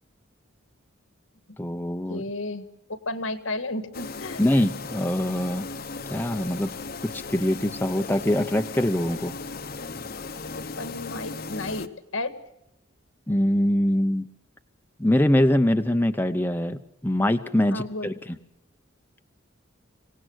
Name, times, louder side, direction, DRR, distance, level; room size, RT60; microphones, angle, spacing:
voice 1, 1.6-2.2 4.4-5.7 6.1-6.7 7.1-9.3 13.3-14.3 15.0-18.1, left 1 dB, 10° left, 7 dB, 0.8 m, -23 dB
voice 2, 2.1-2.7 3.1-4.4 10.6-12.3 17.7-18.1, left 2 dB, 80° left, 11 dB, 1.8 m, -32 dB
sound 1, 3.9-11.9, left 4 dB, 50° left, 1.0 m, -37 dB
26.0 x 18.0 x 6.4 m, 0.81 s
head